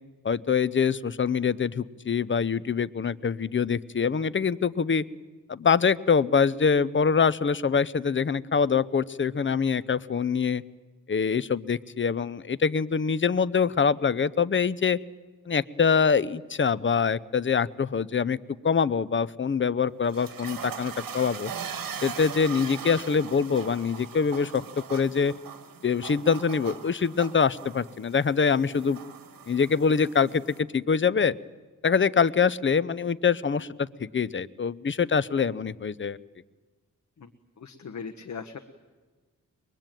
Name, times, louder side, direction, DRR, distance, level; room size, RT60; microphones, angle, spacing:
voice 1, 0.2-5.0 5.5-10.6 11.1-15.0 15.5-18.4 18.6-21.5 22.0-24.6 24.9-25.3 25.8-29.0 29.5-30.4 30.7-31.4 31.8-36.2, left 6 dB, 35° left, 17 dB, 0.7 m, -24 dB
sound 1, 19.8-30.6, right 7 dB, 85° right, 1.9 m, -40 dB
voice 2, 37.6-38.6, left 5 dB, 55° left, 6 dB, 1.2 m, -39 dB
23.0 x 22.0 x 9.1 m, 1.3 s
cardioid pair, 80°, 34 cm